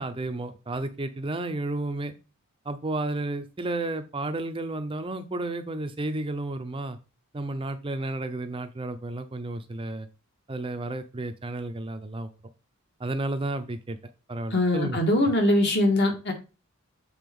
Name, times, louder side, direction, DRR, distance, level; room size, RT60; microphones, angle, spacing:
voice 1, 0.0-2.1 2.7-7.0 7.3-10.1 10.5-12.3 13.0-14.0 14.3-15.0, right 2 dB, 25° right, 9 dB, 0.6 m, -32 dB
voice 2, 14.5-16.3, left 1 dB, 50° left, 2 dB, 1.8 m, -22 dB
7.7 x 4.2 x 3.6 m, 0.31 s
head